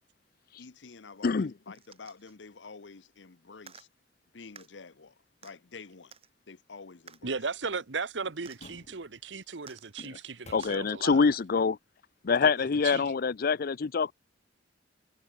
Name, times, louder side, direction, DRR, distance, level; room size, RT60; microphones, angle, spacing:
voice 1, 0.6-3.9 4.3-5.1 5.4-6.1 6.5-7.4, left 4 dB, 70° left, 0.9 m, -48 dB
voice 2, 1.2-1.5 10.0-10.1 10.5-11.8 12.2-14.1, left 5 dB, 55° left, 0.5 m, -25 dB
sound 1, 1.7-2.3 3.6-3.9 4.6-4.7 5.4-5.5 6.1-6.3 7.1-7.2 8.5-8.6 9.6-10.1 10.6-10.8 11.7-11.8, right 7 dB, 35° right, 1.7 m, -52 dB
voice 3, 7.2-11.3 12.4-12.5 12.8-13.1, right 4 dB, 75° right, 1.1 m, -36 dB
sound 2, 7.8-9.4 10.0-11.3 11.6-11.7, left 2 dB, 40° left, 1.6 m, -57 dB
head